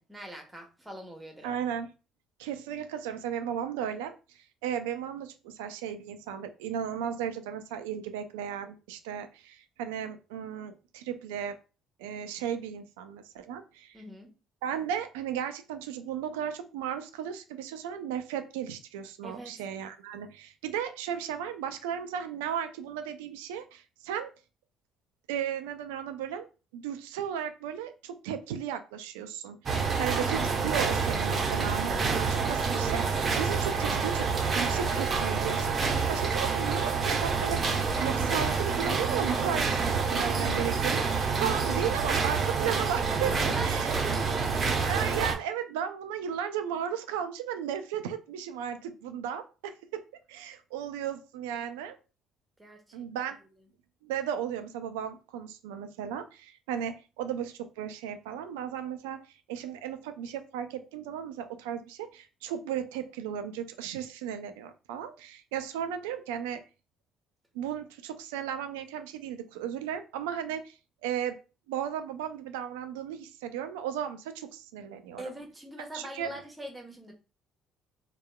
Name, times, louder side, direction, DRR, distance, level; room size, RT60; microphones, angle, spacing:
voice 1, 0.0-1.5 13.9-14.3 19.2-19.6 29.7-30.1 43.3-44.6 52.6-53.1 75.2-77.1, right 1 dB, 15° right, 2 dB, 1.0 m, -42 dB
voice 2, 1.4-1.9 2.4-11.6 12.0-14.0 14.6-24.3 25.3-26.5 26.7-37.6 38.0-43.9 44.8-50.0 50.3-52.0 52.9-53.4 54.0-59.2 59.5-66.6 67.5-71.4 71.7-75.2 75.9-76.3, right 9 dB, 85° right, 9 dB, 0.3 m, -35 dB
sound 1, 29.7-45.4, right 5 dB, 45° right, 0.7 m, -28 dB
2.8 x 2.3 x 2.2 m, 0.32 s
hypercardioid pair, 60°, 0 cm